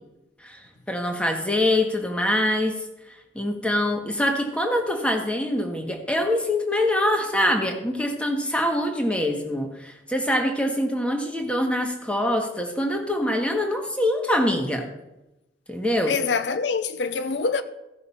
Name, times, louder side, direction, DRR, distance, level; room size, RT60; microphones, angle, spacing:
voice 1, 0.4-2.8 3.3-14.8 15.7-16.1, left 1 dB, 5° left, 1.4 m, -24 dB
voice 2, 16.1-17.6, left 5 dB, 85° left, 0.7 m, -25 dB
15.5 x 5.8 x 5.6 m
head